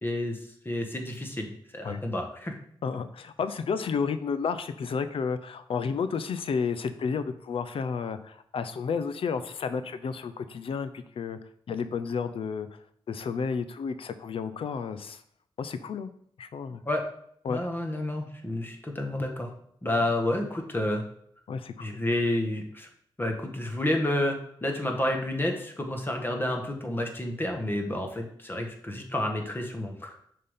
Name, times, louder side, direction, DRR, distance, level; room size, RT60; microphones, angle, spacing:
voice 1, 0.0-0.4 0.6-2.5 16.8-17.0 17.5-19.5 19.8-21.0 21.8-22.9 23.2-30.2, left 1 dB, 20° left, 3 dB, 1.5 m, -30 dB
voice 2, 2.8-11.4 11.7-12.8 13.1-15.2 15.6-16.1 16.4-16.8 17.4-17.7 21.5-22.0, left 5 dB, 75° left, 11 dB, 0.6 m, -31 dB
6.5 x 3.8 x 5.6 m, 0.66 s
cardioid pair, 65°, 9 cm